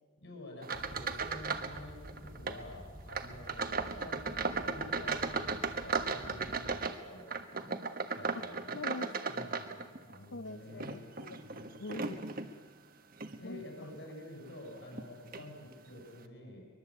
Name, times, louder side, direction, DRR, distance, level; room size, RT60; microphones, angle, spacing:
voice 1, 0.2-7.8 8.2-8.8 9.3-11.1 11.4-12.0 13.4-16.7, left 1 dB, 65° left, 1 dB, 7.1 m, -49 dB
sound 1, 0.6-1.8 2.0-2.6 3.1-10.2 10.7-12.5 13.1-13.4 13.9-14.0 14.9-15.0 15.3-15.5, right 4 dB, 45° right, 1.4 m, -36 dB
sound 2, 0.7-6.9, equal, 70° right, 3.5 m, -51 dB
voice 2, 8.7-9.1 10.3-12.5 13.4-13.6, left 2 dB, 90° left, 10 dB, 0.8 m, -44 dB
23.5 x 22.0 x 8.5 m, 1.4 s
head